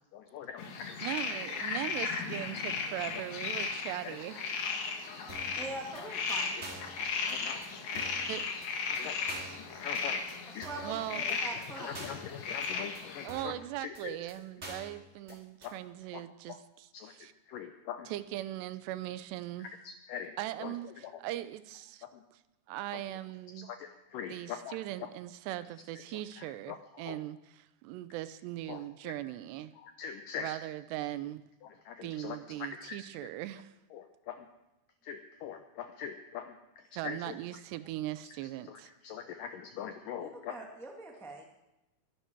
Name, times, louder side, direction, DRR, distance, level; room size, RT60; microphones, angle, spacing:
voice 1, 0.1-1.1 2.8-3.2 4.0-4.7 6.5-6.6 7.0-7.6 7.9-8.0 8.8-9.2 9.6-10.2 10.5-11.0 11.3-14.1 15.6-15.7 16.1-16.2 16.5-16.6 16.9-17.1 17.5-18.1 19.6-20.7 21.0-21.1 22.0-22.2 22.9-23.0 23.6-25.1 26.1-27.2 28.7-29.2 29.8-30.6 31.6-33.1 33.9-34.5 35.0-37.3 38.2-38.4 38.7-40.7, left 8 dB, 85° left, 7 dB, 1.9 m, -43 dB
sound 1, 0.6-13.3, left 5 dB, 55° left, 2.5 m, -36 dB
voice 2, 1.0-4.4 8.3-8.4 10.8-11.2 13.2-17.3 18.1-19.7 20.4-22.1 22.7-23.7 24.3-29.7 30.4-31.4 32.0-33.7 36.9-38.9, right 14 dB, 85° right, 14 dB, 2.9 m, -39 dB
sound 2, 5.3-5.6 5.9-6.0 6.3-6.4 6.6-6.9 7.3-7.4 7.6-7.7 7.9-8.3 8.6-8.7 8.9-9.0 9.3-9.6 9.9-10.0 10.3-10.4 10.6-10.9 11.3-11.4 11.6-11.7 11.9-12.3 12.6-12.7 12.9-13.0 13.3-13.6 13.9-14.0 14.3-14.4 14.6-14.9 15.3-15.4 15.6-15.7, right 1 dB, 20° right, 2.6 m, -45 dB
voice 3, 5.5-6.5 10.6-12.0 40.2-41.4, right 2 dB, 5° left, 1 dB, 0.5 m, -43 dB
21.5 x 11.5 x 4.7 m, 0.94 s
omnidirectional pair, 4.8 m